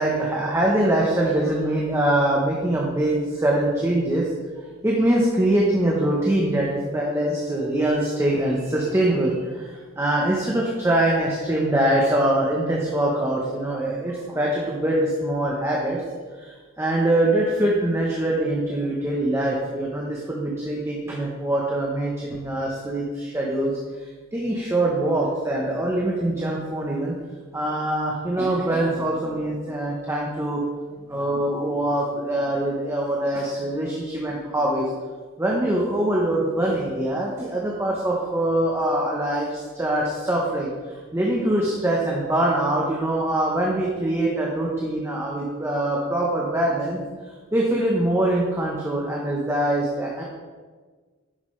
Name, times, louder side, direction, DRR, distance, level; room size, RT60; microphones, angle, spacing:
voice 1, 0.0-4.3 4.8-16.0 16.4-23.7 24.3-27.1 27.5-30.6 31.1-34.9 35.4-47.0 47.5-50.2, right 1 dB, 15° right, -3 dB, 1.0 m, -23 dB
10.5 x 7.1 x 3.3 m, 1.4 s
head